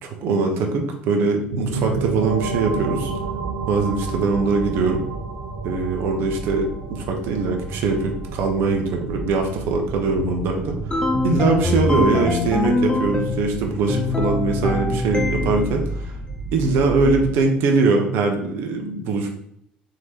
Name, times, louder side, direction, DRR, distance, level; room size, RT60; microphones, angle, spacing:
voice 1, 0.0-3.1 3.7-5.0 5.6-10.7 11.2-16.1 16.5-19.3, right 3 dB, 60° right, 2 dB, 1.0 m, -22 dB
sound 1, 1.5-11.1, right 4 dB, 85° right, 0.5 m, -32 dB
sound 2, 1.6-17.4, right 2 dB, 20° right, 0.7 m, -33 dB
sound 3, 10.9-13.5 13.9-15.8, left 3 dB, 20° left, 0.6 m, -23 dB
3.8 x 3.1 x 4.3 m, 0.73 s
hypercardioid pair, 65°, 4 cm